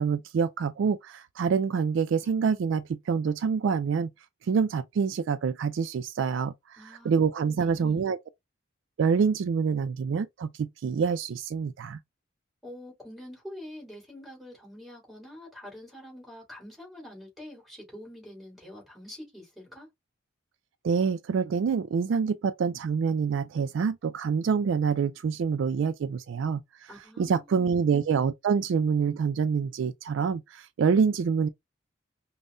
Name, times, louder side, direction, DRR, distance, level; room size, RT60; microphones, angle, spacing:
voice 1, 0.0-4.1 4.5-6.5 7.0-8.2 9.0-12.0 20.8-26.9 27.2-31.5, right 6 dB, 65° right, 0.3 m, -26 dB
voice 2, 6.8-7.1 7.4-8.1 12.6-19.9 26.9-27.7, left 1 dB, ahead, 2.6 m, -46 dB
5.3 x 2.1 x 2.5 m
head